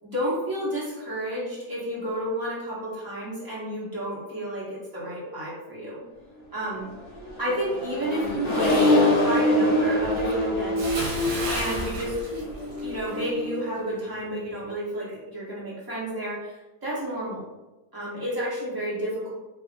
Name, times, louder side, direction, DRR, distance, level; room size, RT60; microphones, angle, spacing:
voice 1, 0.0-6.0 6.5-6.9 7.4-11.0 11.5-12.1 12.8-16.5 16.8-17.4 17.9-19.3, equal, 20° right, -8 dB, 0.6 m, -31 dB
Accelerating revving vroom, 7.0-13.7, left 1 dB, 50° left, 0.5 m, -25 dB
Bathtub (filling or washing) / Splash splatter, 10.8-13.2 13.5-13.8, right 2 dB, 65° right, 1.2 m, -33 dB
2.7 x 2.5 x 2.4 m, 1.1 s
omnidirectional pair, 1.7 m